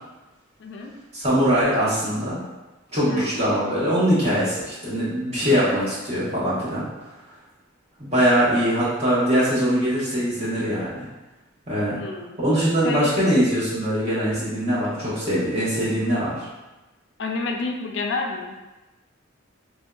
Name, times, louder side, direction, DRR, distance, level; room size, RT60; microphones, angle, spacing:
voice 1, 0.6-0.9 3.1-3.3 11.9-12.4 12.8-13.1 17.2-18.6, left 3 dB, 60° left, 2 dB, 0.3 m, -29 dB
voice 2, 1.1-2.4 2.9-6.8 8.0-11.1 11.7-12.0 12.4-16.4, equal, 30° right, -10 dB, 1.1 m, -22 dB
3.5 x 2.6 x 2.3 m, 1.1 s
head